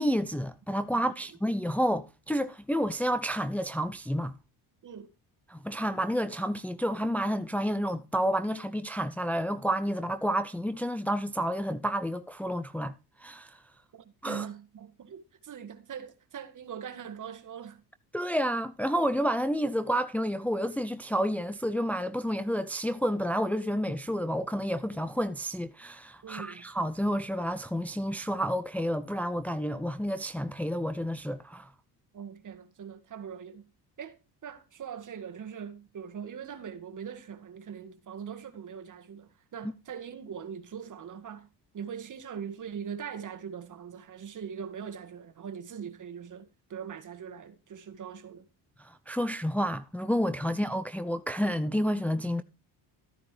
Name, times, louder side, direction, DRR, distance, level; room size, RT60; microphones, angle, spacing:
voice 1, 0.0-4.3 5.5-13.6 14.2-14.5 18.1-31.7 48.8-52.4, equal, 5° left, 0.7 m, -30 dB
voice 2, 13.9-17.8 26.2-26.7 32.1-33.7 34.0-41.5 41.7-48.5, right 7 dB, 45° right, 1.9 m, -41 dB
14.5 x 9.7 x 3.3 m
cardioid pair, 90°, 42 cm